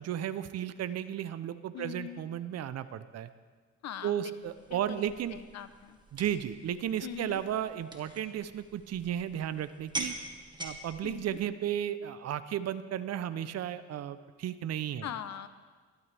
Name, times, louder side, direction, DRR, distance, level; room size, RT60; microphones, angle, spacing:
voice 1, 0.0-3.3 4.0-5.4 6.1-10.2 10.6-15.1, right 10 dB, 55° right, 12 dB, 0.7 m, -34 dB
voice 2, 1.7-2.2 3.8-4.3 4.7-6.0 7.0-7.4 11.0-11.4 15.0-15.5, left 9 dB, 60° left, 12 dB, 0.9 m, -42 dB
sound 1, 4.4-11.4, right 2 dB, 15° right, 1.5 m, -44 dB
21.0 x 12.5 x 3.4 m, 1.4 s
cardioid pair, 90°, 30 cm